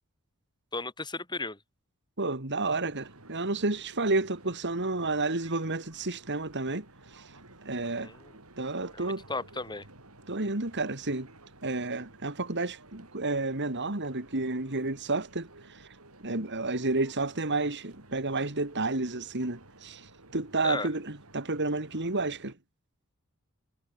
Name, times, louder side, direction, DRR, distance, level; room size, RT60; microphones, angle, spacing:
voice 1, 0.7-1.6 8.0-8.3 8.9-9.9 20.6-20.9, left 3 dB, 20° left, 4.0 m, -35 dB
voice 2, 2.2-6.8 7.1-7.2 7.6-8.1 8.6-9.3 10.3-11.3 11.6-15.8 16.2-20.1 20.3-22.5, right 2 dB, 55° right, 2.9 m, -31 dB
sound 1, 2.6-22.5, right 2 dB, 80° right, 7.5 m, -54 dB
head